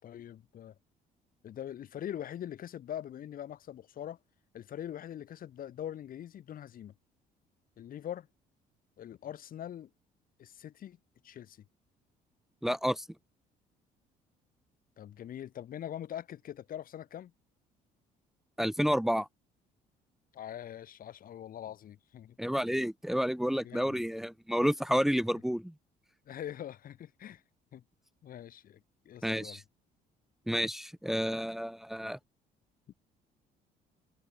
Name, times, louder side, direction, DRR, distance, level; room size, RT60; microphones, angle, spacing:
voice 1, 0.0-0.7 1.4-4.2 4.5-6.9 7.8-8.3 9.0-9.9 10.4-11.0 11.2-11.6 15.0-17.3 20.3-22.4 23.6-24.0 26.3-27.4 27.7-27.8 28.2-28.8 29.1-29.6, left 10 dB, 55° left, 5.7 m, -43 dB
voice 2, 12.6-13.1 18.6-19.3 22.4-25.7 29.2-29.6 30.5-32.2, equal, ahead, 1.9 m, -30 dB
cardioid pair, 110°, 17 cm